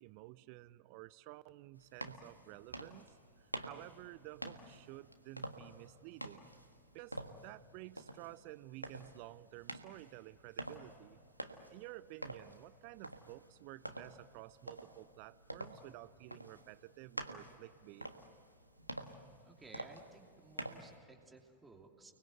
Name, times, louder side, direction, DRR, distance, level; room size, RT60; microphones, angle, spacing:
voice 1, 0.0-3.1 3.4-6.4 6.9-7.2 7.4-11.2 11.7-18.1, right 18 dB, 45° right, 19 dB, 0.6 m, -52 dB
sound 1, 1.8-21.0, right 1 dB, 90° right, 1.5 m, -49 dB
voice 2, 19.4-22.1, right 3 dB, 15° right, 2 dB, 2.9 m, -58 dB
30.0 x 20.5 x 8.0 m, 2.3 s
figure-of-eight pair, 90°, 0 cm